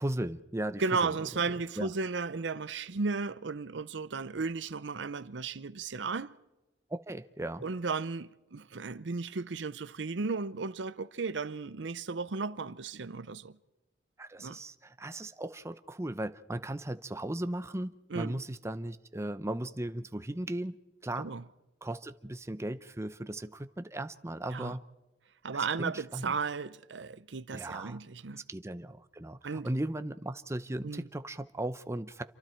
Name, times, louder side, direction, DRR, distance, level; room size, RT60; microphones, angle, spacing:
voice 1, 0.0-1.2 1.8-1.9 6.9-7.6 14.2-20.8 21.0-21.3 21.8-24.8 25.5-26.3 27.5-28.0 28.5-32.2, right 1 dB, 15° right, 0.7 m, -37 dB
voice 2, 0.8-6.3 7.6-13.6 14.4-14.6 18.1-18.4 21.2-21.4 24.5-24.7 25.4-28.4 29.4-29.7 30.8-31.1, right 4 dB, 80° right, 0.7 m, -35 dB
28.0 x 24.0 x 4.5 m
head